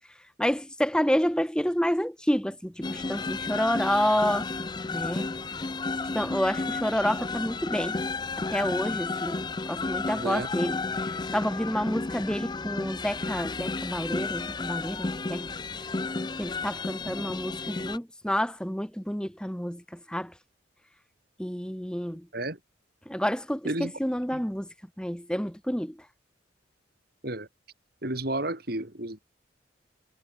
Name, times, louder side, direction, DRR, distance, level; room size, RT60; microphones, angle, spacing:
voice 1, 0.4-4.5 4.9-5.3 6.1-8.0 8.4-10.8 11.3-15.5 16.4-20.3 21.4-22.2 23.1-24.7 25.0-26.0, equal, 5° left, 1.6 m, -29 dB
sound 1, 2.8-18.0, left 3 dB, 20° left, 0.5 m, -32 dB
voice 2, 10.1-10.5 22.3-22.6 23.6-23.9 24.3-24.4 27.2-27.5 28.0-29.2, right 1 dB, 50° right, 3.0 m, -31 dB
head